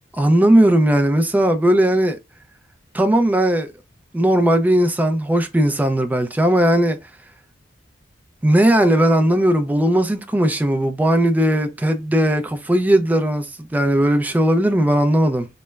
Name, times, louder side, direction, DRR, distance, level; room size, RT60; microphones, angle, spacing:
voice 1, 0.1-2.2 2.9-3.7 4.1-7.0 8.4-15.5, right 1 dB, 10° right, 0.3 m, -17 dB
3.1 x 2.0 x 2.2 m
head